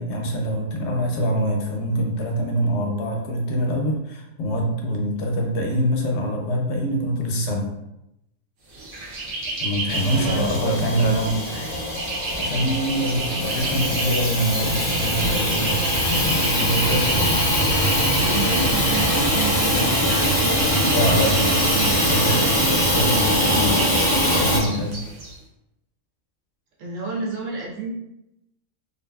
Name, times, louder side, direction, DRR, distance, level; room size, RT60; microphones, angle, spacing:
voice 1, 0.0-7.7 9.6-11.4 12.4-15.8 16.1-17.3 20.9-21.4 22.1-22.5 22.9-23.8 24.4-25.0, equal, 65° left, 1 dB, 0.7 m, -24 dB
sound 1, 8.7-25.3, right 2 dB, 85° right, 1.1 m, -31 dB
Hiss / Toilet flush / Trickle dribble, 9.9-24.6, equal, 20° left, 0.3 m, -22 dB
voice 2, 10.1-11.8 18.1-22.5 26.8-27.9, right 3 dB, 70° right, -3 dB, 1.1 m, -31 dB
2.6 x 2.5 x 2.2 m, 0.87 s
omnidirectional pair, 1.4 m